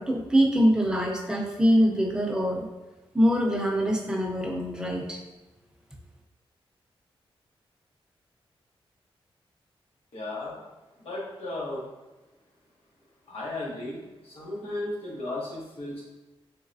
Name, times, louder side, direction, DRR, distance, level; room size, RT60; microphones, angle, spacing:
voice 1, 0.0-2.7 3.1-5.2, equal, 5° right, -1 dB, 0.6 m, -24 dB
voice 2, 10.1-10.5 11.0-11.9 13.3-14.0 14.3-16.1, left 2 dB, 85° left, -5 dB, 1.3 m, -34 dB
4.0 x 3.2 x 2.6 m, 1.1 s
wide cardioid pair, 150°, 10 cm